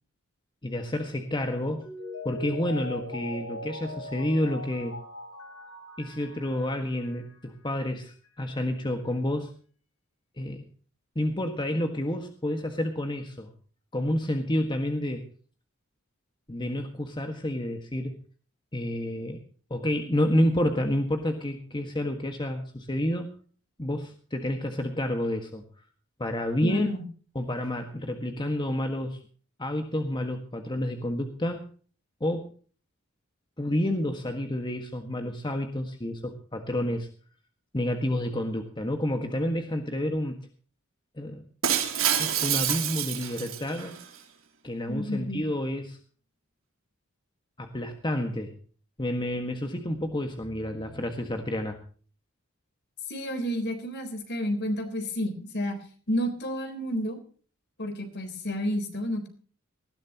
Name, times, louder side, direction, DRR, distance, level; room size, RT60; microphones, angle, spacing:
voice 1, 0.6-1.9 2.2-5.0 6.0-9.5 10.4-10.6 11.1-13.5 13.9-15.3 16.5-18.2 18.7-19.4 19.7-23.3 23.8-25.6 26.2-26.9 27.3-29.2 29.6-31.7 32.2-32.5 33.6-37.1 37.7-40.4 41.2-41.4 42.2-43.9 44.6-46.0 47.6-48.5 49.0-51.8, left 1 dB, 20° left, 5 dB, 1.6 m, -29 dB
Mallet percussion, 1.8-7.3 7.7-7.8, left 1 dB, 75° left, 6.5 m, -40 dB
voice 2, 26.6-27.0 44.9-45.4 53.1-55.8 56.1-57.2 57.8-59.3, equal, 55° left, 7 dB, 3.8 m, -30 dB
Shatter, 41.6-44.0, right 10 dB, 75° right, 3.0 m, -27 dB
19.5 x 15.5 x 2.9 m, 0.42 s
head